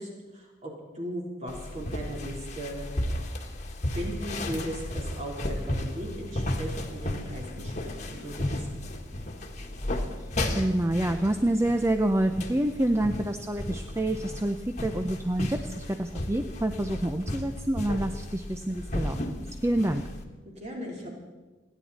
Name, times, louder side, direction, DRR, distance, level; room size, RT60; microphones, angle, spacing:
voice 1, 0.0-2.8 3.9-8.7 20.5-21.1, equal, 35° right, -2 dB, 3.5 m, -37 dB
sound 1, 1.5-20.2, left 1 dB, 40° left, 1.5 m, -34 dB
voice 2, 10.5-20.0, right 1 dB, 15° right, 7 dB, 0.5 m, -27 dB
29.0 x 10.0 x 4.1 m, 1.2 s
head